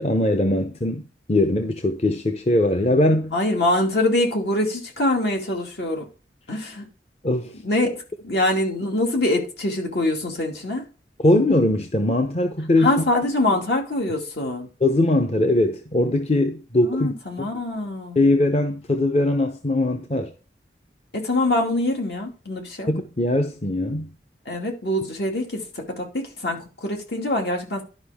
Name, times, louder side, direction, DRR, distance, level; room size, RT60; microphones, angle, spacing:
voice 1, 0.0-3.3 7.2-7.5 11.2-13.0 14.8-17.1 17.4-17.5 18.2-20.3 22.9-24.1, left 1 dB, 35° left, 0.8 m, -21 dB
voice 2, 3.3-6.1 6.5-6.9 7.6-10.8 12.8-14.7 16.8-18.3 21.1-22.9 24.5-25.6 26.0-27.8, left 1 dB, 70° left, 2.4 m, -24 dB
12.0 x 5.4 x 3.6 m
head